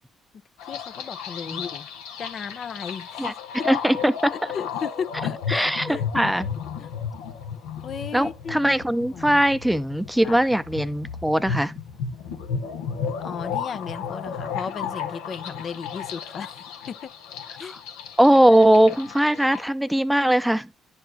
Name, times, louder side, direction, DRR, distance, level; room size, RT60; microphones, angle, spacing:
sound 1, 0.6-19.6, left 7 dB, 85° left, 1.0 m, -34 dB
voice 1, 0.7-1.9 2.2-3.3 4.3-6.1 6.8-6.9 7.8-8.6 9.1-9.4 10.2-10.4 13.2-17.1 17.6-17.8, left 6 dB, 55° left, 0.6 m, -35 dB
voice 2, 3.6-4.3 5.5-5.9 6.1-6.5 8.1-11.8 17.6-17.8 18.2-20.7, right 1 dB, 5° right, 0.6 m, -20 dB
11.0 x 4.4 x 2.7 m
hypercardioid pair, 50°, 0 cm